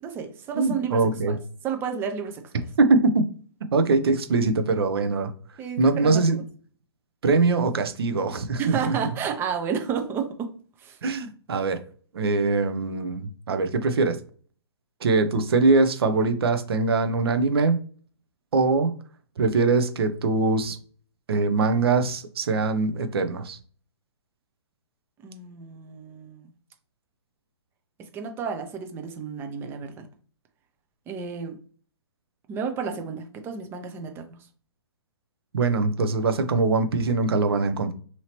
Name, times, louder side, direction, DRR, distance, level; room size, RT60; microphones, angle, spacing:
voice 1, 0.0-1.4 1.6-2.4 5.6-6.3 8.6-10.5 10.8-11.0 25.2-26.5 28.1-30.1 31.1-31.6 32.5-34.2, right 6 dB, 15° right, 0.4 m, -31 dB
voice 2, 0.6-1.3 2.8-3.2 3.7-5.3 5.8-6.4 7.2-9.0 11.0-11.8 12.1-14.2 15.0-17.8 18.5-18.9 19.4-20.8 21.3-23.6 35.5-37.9, right 3 dB, 60° right, 0.6 m, -22 dB
2.9 x 2.8 x 2.9 m
figure-of-eight pair, 125°, 14 cm